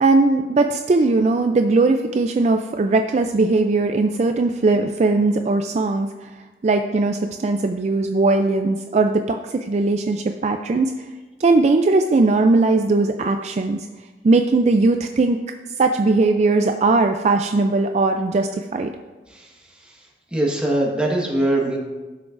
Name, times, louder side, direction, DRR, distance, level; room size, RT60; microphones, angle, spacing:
voice 1, 0.0-6.3 6.6-10.9 11.4-13.9 14.2-15.4 15.8-18.9, right 3 dB, 40° right, 5 dB, 0.3 m, -19 dB
voice 2, 20.3-21.8, right 1 dB, 5° right, -2 dB, 1.3 m, -22 dB
16.0 x 6.1 x 2.5 m, 1.3 s
head